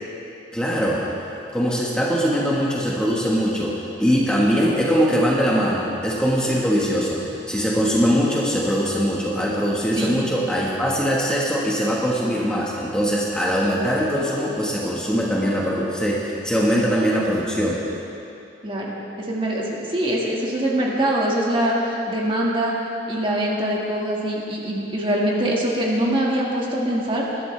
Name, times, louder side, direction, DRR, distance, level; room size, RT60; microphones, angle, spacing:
voice 1, 0.5-1.0 1.5-18.0, equal, 5° left, -5 dB, 1.4 m, -22 dB
voice 2, 18.6-22.8 23.1-27.3, right 1 dB, 30° right, -3 dB, 1.8 m, -23 dB
21.5 x 12.0 x 3.4 m, 2.8 s
head